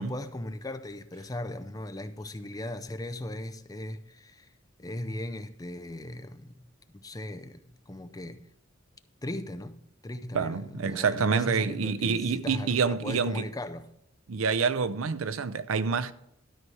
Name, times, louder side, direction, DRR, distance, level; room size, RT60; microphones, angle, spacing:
voice 1, 0.0-4.5 4.8-6.6 6.9-8.4 9.2-13.9, left 1 dB, 20° left, 0.5 m, -38 dB
voice 2, 10.3-13.4 14.3-16.1, right 5 dB, 85° right, 0.6 m, -27 dB
12.5 x 4.7 x 6.3 m
head